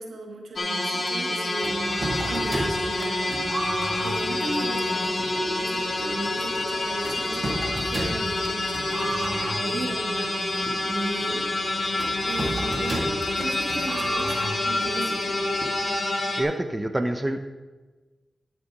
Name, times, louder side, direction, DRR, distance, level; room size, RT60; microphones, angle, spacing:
voice 1, 0.0-11.5 12.2-15.3, right 2 dB, 85° right, 2 dB, 1.6 m, -36 dB
sound 1, 0.6-16.4, left 2 dB, 50° left, 1.7 m, -27 dB
sound 2, 1.6-16.3, right 1 dB, 45° right, 1.7 m, -34 dB
voice 2, 16.4-17.5, right 1 dB, 20° right, 8 dB, 0.8 m, -26 dB
11.5 x 6.8 x 4.7 m, 1.3 s
cardioid pair, 55°, 0 cm